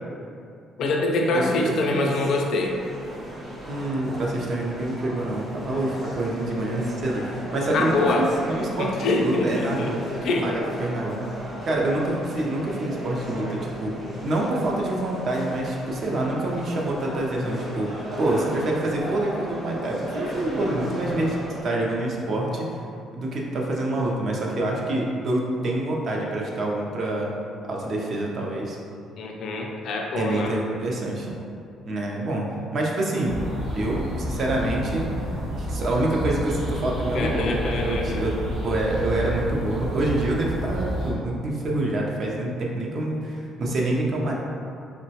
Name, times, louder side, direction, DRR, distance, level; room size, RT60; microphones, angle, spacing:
voice 1, 0.8-2.8 7.7-8.3 8.8-9.9 10.2-10.5 29.2-30.5 37.1-38.2, left 2 dB, 60° left, 0 dB, 0.3 m, -25 dB
voice 2, 1.3-2.1 3.7-10.0 10.4-10.5 10.8-11.2 11.7-22.7 23.1-27.3 27.7-28.8 30.2-31.3 31.9-32.5 32.7-33.4 33.8-35.1 35.6-38.3 38.6-44.3, right 1 dB, 45° right, -2 dB, 0.5 m, -26 dB
sound 1, 2.6-21.6, equal, 30° right, 1.1 m, -35 dB
sound 2, 33.2-41.1, equal, 80° right, 1.0 m, -30 dB
3.7 x 2.1 x 2.7 m, 2.5 s
cardioid pair, 145°, 0 cm